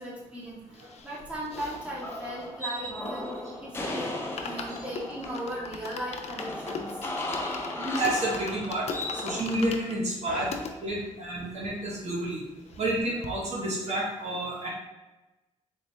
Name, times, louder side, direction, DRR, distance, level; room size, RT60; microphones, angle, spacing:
voice 1, 0.0-7.0 10.3-10.5, right 1 dB, 10° right, -6 dB, 1.4 m, -38 dB
sound 1, 0.7-3.5 3.8-3.9 4.2-10.7 11.3-11.4 11.6-11.7 12.0-13.0 13.2-13.3, left 5 dB, 60° left, 0.5 m, -40 dB
sound 2, 1.6-9.4, left 1 dB, 20° left, 0.7 m, -36 dB
voice 2, 7.8-8.9 9.1-10.5 10.8-12.4 12.8-14.7, right 1 dB, 60° right, -4 dB, 1.1 m, -30 dB
4.0 x 3.3 x 3.2 m, 1.0 s
cardioid pair, 85°, 13 cm